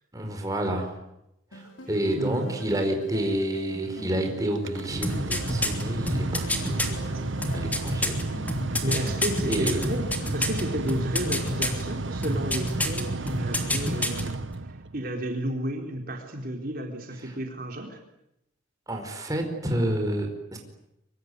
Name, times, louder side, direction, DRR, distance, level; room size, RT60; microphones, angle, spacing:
voice 1, 0.1-1.0 1.5-7.3 7.5-8.2 8.9-9.1 9.4-9.8 17.2-17.4 18.9-20.6, right 1 dB, 20° right, 3 dB, 4.8 m, -29 dB
sound 1, 1.5-10.2, equal, 85° left, 5.5 m, -44 dB
voice 2, 2.1-2.7 8.7-18.0, right 1 dB, 45° right, 3 dB, 4.1 m, -33 dB
Mechanical fan, 4.6-15.1, right 2 dB, 75° right, 1.2 m, -32 dB
sound 2, 5.0-6.9 7.4-10.6 10.9-11.8 12.2-13.0 13.3-14.2 14.5-14.6, left 1 dB, 10° left, 3.2 m, -27 dB
24.5 x 24.0 x 9.6 m, 0.83 s
head